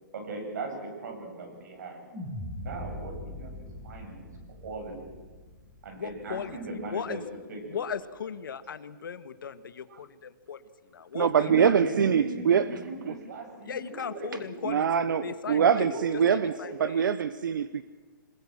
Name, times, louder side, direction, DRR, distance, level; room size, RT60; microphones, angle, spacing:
voice 1, 0.1-2.0 2.6-3.5 3.8-5.1 5.8-7.8 11.4-14.3 15.5-16.7, right 2 dB, 55° right, 5 dB, 7.7 m, -39 dB
sound 1, 2.1-6.5, left 1 dB, 10° right, 6.3 m, -41 dB
voice 2, 5.9-7.2 7.6-10.6 10.9-11.7 13.6-16.0 16.3-17.1, left 7 dB, 75° left, 11 dB, 1.8 m, -37 dB
voice 3, 11.1-12.7 13.1-13.2 14.6-16.5 16.8-17.8, right 7 dB, 70° right, 14 dB, 1.0 m, -24 dB
27.0 x 20.5 x 7.6 m, 1.3 s
hypercardioid pair, 165°, 11 cm